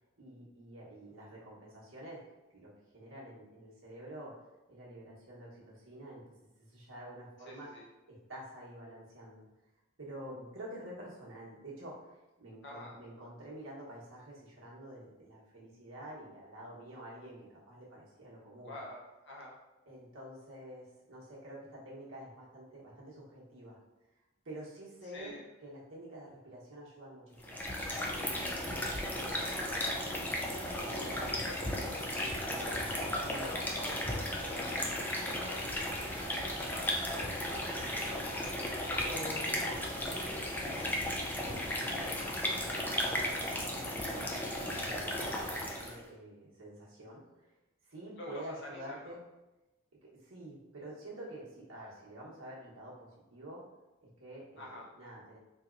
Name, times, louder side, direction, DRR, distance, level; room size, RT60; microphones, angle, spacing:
voice 1, 0.2-2.2 2.5-4.4 4.7-6.2 6.6-7.7 8.1-9.4 10.0-18.8 19.9-23.8 24.4-27.6 28.6-29.2 30.7-31.4 33.2-33.5 39.0-41.1 41.5-44.4 44.8-47.5 47.8-49.2 50.0-53.6 54.0-55.4, right 1 dB, 90° right, -5 dB, 1.1 m, -48 dB
voice 2, 7.4-7.8 12.6-13.0 18.7-19.5 25.1-25.4 29.0-30.1 30.8-32.8 33.4-35.0 35.4-38.8 48.2-49.2 54.6-54.9, left 1 dB, 60° left, -2 dB, 0.8 m, -48 dB
sound 1, 27.4-46.0, left 1 dB, 10° left, 0.3 m, -35 dB
4.0 x 2.9 x 2.5 m, 1.0 s
head